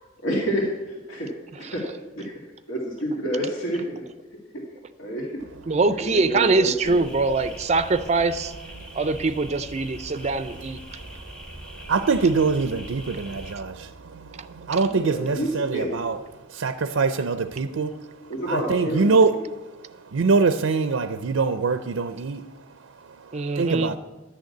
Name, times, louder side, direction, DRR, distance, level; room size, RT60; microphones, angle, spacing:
voice 1, 0.2-1.3 1.6-1.8 2.2-2.3 2.7-4.1 5.0-5.3 5.9-7.1 14.9-16.0 18.3-19.4, equal, 80° left, 2.0 m, -28 dB
voice 2, 5.7-8.5 8.9-10.8 23.3-23.9, right 3 dB, 35° right, 0.4 m, -23 dB
sound 1, 6.8-13.6, equal, 5° left, 0.9 m, -42 dB
voice 3, 10.8-16.2 16.5-24.0, right 4 dB, 90° right, 0.5 m, -25 dB
11.0 x 6.5 x 8.4 m
head